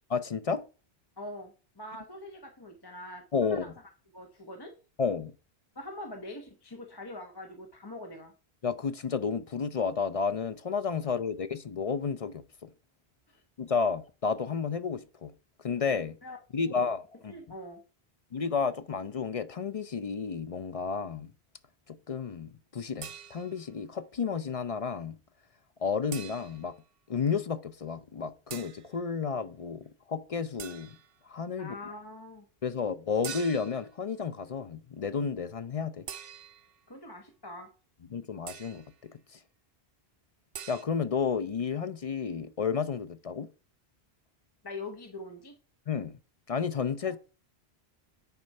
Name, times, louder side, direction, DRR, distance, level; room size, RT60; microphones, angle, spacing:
voice 1, 0.1-0.6 3.3-3.6 5.0-5.3 8.6-12.7 13.6-15.3 15.6-16.2 16.5-17.4 18.3-21.3 21.9-25.2 25.8-26.7 27.1-30.9 31.3-31.8 32.6-36.1 38.1-39.4 40.7-43.5 45.9-46.2 46.5-47.2, left 5 dB, 45° left, 0.5 m, -32 dB
voice 2, 1.2-3.7 4.1-4.7 5.7-8.3 13.3-13.4 16.2-16.4 16.6-16.9 17.3-17.8 31.6-32.4 36.9-37.7 44.6-45.6 47.0-47.2, left 1 dB, 25° left, 1.0 m, -43 dB
sound 1, 23.0-23.7 26.1-26.7 28.5-28.9 30.6-31.1 33.2-33.9 36.1-36.8 38.5-38.9 40.5-40.8, right 8 dB, 65° right, 0.8 m, -44 dB
9.3 x 4.3 x 5.3 m
omnidirectional pair, 1.1 m